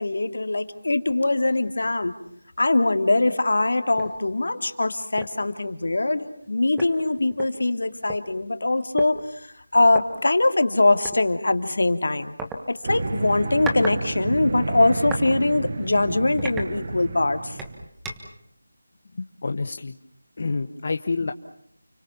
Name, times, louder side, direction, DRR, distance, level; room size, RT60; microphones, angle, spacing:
voice 1, 0.0-2.1 2.6-9.2 9.7-12.3 12.7-17.6, left 2 dB, 70° left, 8 dB, 2.7 m, -22 dB
sound 1, 4.0-4.2 4.6-4.7 5.2-5.4 6.4-6.5 6.8-8.2 9.0-9.1 9.9-10.0 11.0-11.2 12.4-12.6 13.3-14.0 14.3-15.3 15.7-15.9 16.4-17.2 17.6-18.4, right 2 dB, 5° right, 1.4 m, -35 dB
sound 2, 12.8-17.9, right 3 dB, 35° right, 1.6 m, -30 dB
voice 2, 19.1-20.0 20.4-21.3, left 4 dB, 40° left, 6 dB, 1.1 m, -28 dB
30.0 x 24.0 x 7.3 m, 0.69 s
figure-of-eight pair, 175°, 0 cm